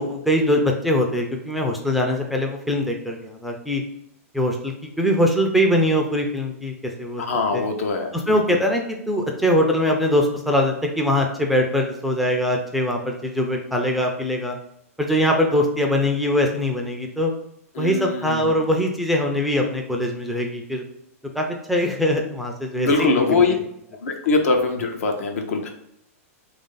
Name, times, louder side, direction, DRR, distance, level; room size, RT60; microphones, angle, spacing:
voice 1, 0.0-3.8 4.3-6.7 7.0-7.2 7.5-7.6 8.3-14.6 15.0-17.3 17.8-20.8 21.3-22.9 23.3-23.4, left 1 dB, ahead, 0 dB, 0.4 m, -22 dB
voice 2, 7.2-8.6 17.7-18.5 22.8-23.5 24.0-25.7, left 3 dB, 70° left, 3 dB, 0.8 m, -22 dB
3.2 x 2.6 x 3.8 m, 0.77 s
hypercardioid pair, 125°, 8 cm